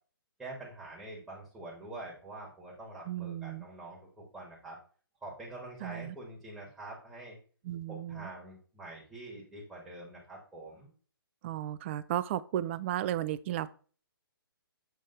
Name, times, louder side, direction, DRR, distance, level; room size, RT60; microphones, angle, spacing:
voice 1, 0.4-4.8 5.2-7.4 7.9-10.9, right 2 dB, 10° right, -5 dB, 1.9 m, -46 dB
voice 2, 3.1-3.7 5.8-6.1 7.6-8.3 11.4-13.7, right 12 dB, 30° right, 16 dB, 0.4 m, -34 dB
7.6 x 3.5 x 4.0 m, 0.41 s
hypercardioid pair, 145°, 12 cm